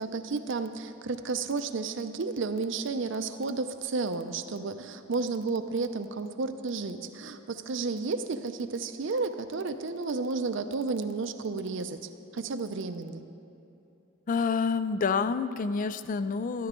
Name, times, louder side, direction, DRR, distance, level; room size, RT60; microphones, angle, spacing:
voice 1, 0.0-13.2, right 4 dB, 65° right, 9 dB, 0.6 m, -32 dB
voice 2, 14.3-16.7, left 5 dB, 40° left, 13 dB, 0.3 m, -28 dB
13.0 x 12.0 x 3.7 m, 2.9 s
head